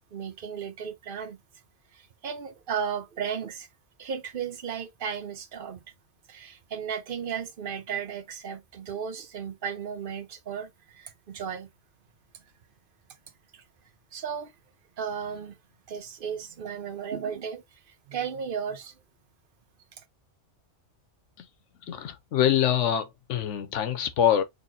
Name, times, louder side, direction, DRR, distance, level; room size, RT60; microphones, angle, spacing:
voice 1, 0.0-1.4 1.9-3.7 4.0-5.8 6.3-11.7 12.3-12.4 13.5-13.6 14.1-14.5 15.0-15.6 15.9-17.8 18.1-19.0, right 7 dB, 50° right, 0.8 m, -35 dB
voice 2, 21.8-24.4, left 10 dB, 75° left, 1.0 m, -25 dB
4.1 x 3.0 x 2.7 m
omnidirectional pair, 1.3 m